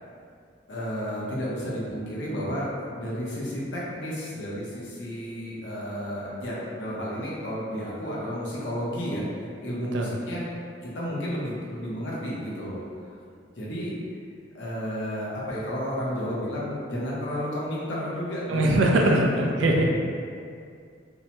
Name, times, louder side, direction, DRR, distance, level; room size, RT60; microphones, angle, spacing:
voice 1, 0.7-9.3 9.6-10.4 10.8-12.8 13.6-13.9 14.5-19.7, equal, 75° left, -6 dB, 0.7 m, -32 dB
voice 2, 18.5-19.9, right 1 dB, 90° right, 0 dB, 0.4 m, -21 dB
2.7 x 2.1 x 2.8 m, 2.3 s
head